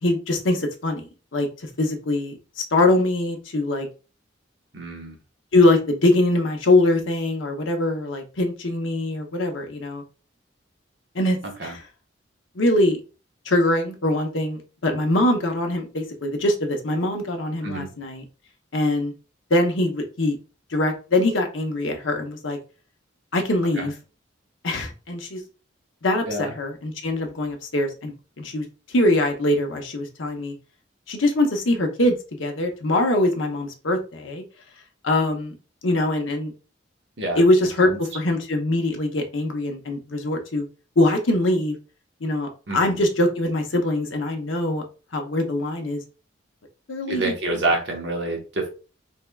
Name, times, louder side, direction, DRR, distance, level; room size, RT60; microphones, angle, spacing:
voice 1, 0.0-1.5 1.8-3.9 5.5-10.0 11.1-11.8 12.5-13.0 13.5-18.2 18.7-19.1 19.5-20.4 20.7-22.6 23.3-23.9 24.6-25.4 26.0-30.5 31.1-34.4 35.0-35.5 35.8-36.5 37.3-40.7 41.0-41.8 42.2-44.8 45.1-46.0 46.9-47.6, left 1 dB, 90° left, 4 dB, 0.8 m, -23 dB
voice 2, 4.7-5.2 11.6-11.7 17.6-17.9 23.8-23.9 26.2-26.5 37.2-37.4 37.8-38.0 42.7-43.0 47.1-48.7, right 2 dB, 65° right, 1 dB, 1.1 m, -27 dB
3.5 x 3.3 x 2.3 m, 0.34 s
head